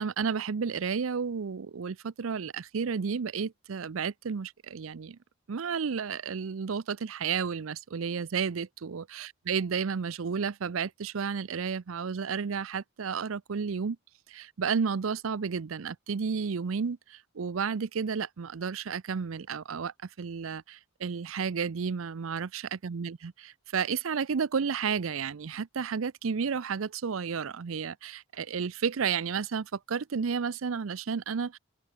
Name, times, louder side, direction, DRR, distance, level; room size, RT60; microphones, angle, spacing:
voice 1, 0.0-5.2 5.5-14.0 14.3-31.6, right 6 dB, 75° right, 0.5 m, -32 dB
open air
head